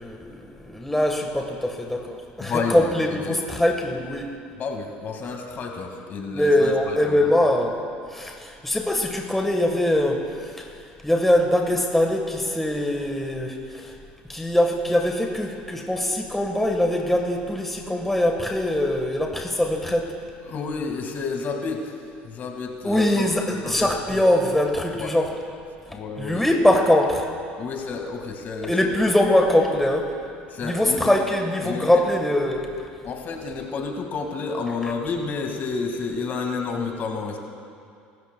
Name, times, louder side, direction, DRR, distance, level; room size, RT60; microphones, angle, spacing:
voice 1, 0.0-4.3 6.3-7.8 8.1-10.7 11.0-14.0 14.3-20.1 22.8-25.3 26.2-27.2 28.6-30.1 30.6-32.7, left 1 dB, 5° left, 2 dB, 1.3 m, -22 dB
voice 2, 2.4-3.4 4.6-7.3 20.5-21.9 22.2-24.2 24.9-25.1 25.9-26.5 27.6-28.9 30.5-31.1 31.6-32.0 33.0-37.4, left 4 dB, 45° left, 3 dB, 1.8 m, -30 dB
24.5 x 13.5 x 2.2 m, 2.4 s
supercardioid pair, 100°, 4 cm